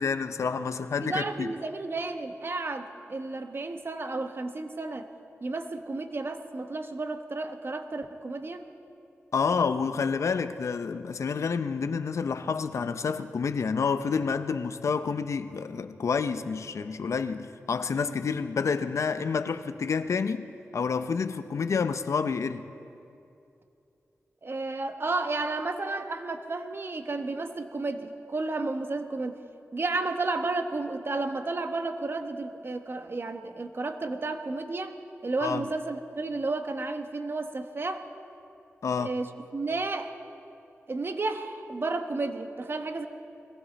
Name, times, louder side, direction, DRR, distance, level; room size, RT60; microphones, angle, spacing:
voice 1, 0.0-1.5 9.3-20.5 20.7-22.6 35.4-35.7 38.8-39.1, left 5 dB, 75° left, 0.6 m, -29 dB
voice 2, 1.0-5.1 5.4-8.6 24.4-29.4 29.7-35.0 35.2-38.0 39.0-40.1 40.9-43.1, right 3 dB, 50° right, 1.1 m, -32 dB
21.0 x 15.5 x 4.1 m
cardioid pair, 50°, 5 cm